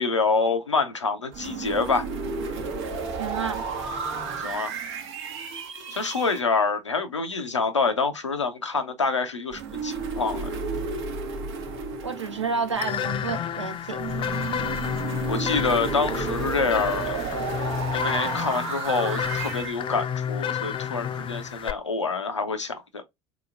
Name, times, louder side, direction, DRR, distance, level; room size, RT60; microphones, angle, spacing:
voice 1, 0.0-2.1 4.4-4.7 5.9-10.5 15.3-17.2 17.9-23.0, left 4 dB, 90° left, 0.5 m, -26 dB
sound 1, 1.3-6.4 9.5-13.3 14.0-19.7, right 5 dB, 70° right, 0.9 m, -32 dB
voice 2, 3.2-3.6 12.0-14.0, right 5 dB, 90° right, 0.6 m, -30 dB
sound 2, 12.7-21.7, left 8 dB, 35° left, 0.4 m, -30 dB
3.9 x 2.9 x 2.4 m
figure-of-eight pair, 60°, 15 cm